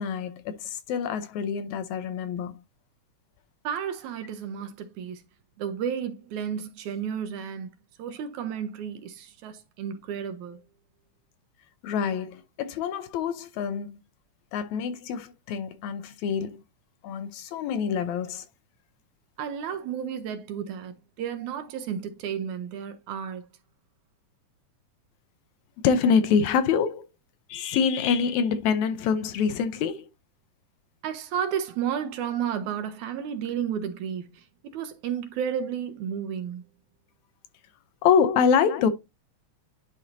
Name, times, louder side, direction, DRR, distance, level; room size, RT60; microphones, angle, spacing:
voice 1, 0.0-2.6 11.8-14.0 14.5-16.6 17.0-18.4 25.8-27.1 27.5-30.1 38.0-38.9, left 6 dB, 75° left, 1.9 m, -25 dB
voice 2, 3.6-5.2 5.6-7.7 8.0-10.6 19.4-23.5 31.0-34.5 34.7-36.6, right 8 dB, 80° right, 2.1 m, -32 dB
11.0 x 4.2 x 2.6 m
omnidirectional pair, 3.5 m